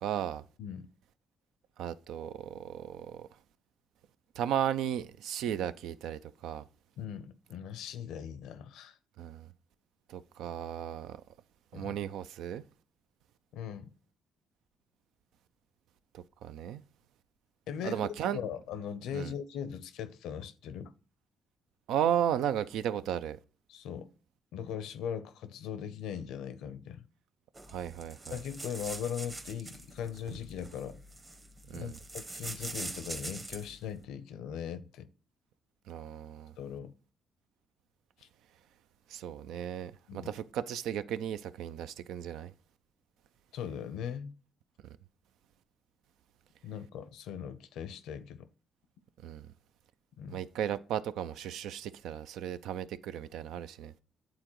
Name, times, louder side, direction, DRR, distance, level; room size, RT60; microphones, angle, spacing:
voice 1, 0.0-0.4 1.8-3.3 4.4-6.6 9.2-9.5 10.1-11.2 11.7-12.6 16.1-16.8 17.8-18.4 19.1-19.3 21.9-23.4 27.7-28.4 31.7-32.0 35.9-36.5 39.1-42.5 49.2-49.5 50.3-53.9, right 10 dB, 85° right, 0.4 m, -35 dB
voice 2, 7.0-9.0 11.7-12.0 13.5-13.9 17.7-20.9 23.7-24.1 24.5-27.0 28.3-31.0 31.7-35.1 36.6-36.9 38.2-38.3 40.1-40.3 43.5-44.4 46.6-48.5 50.2-50.4, left 8 dB, 85° left, 0.6 m, -39 dB
sound 1, 27.6-33.8, right 2 dB, 30° right, 1.1 m, -43 dB
8.9 x 3.8 x 3.0 m
cardioid pair, 90°, 0 cm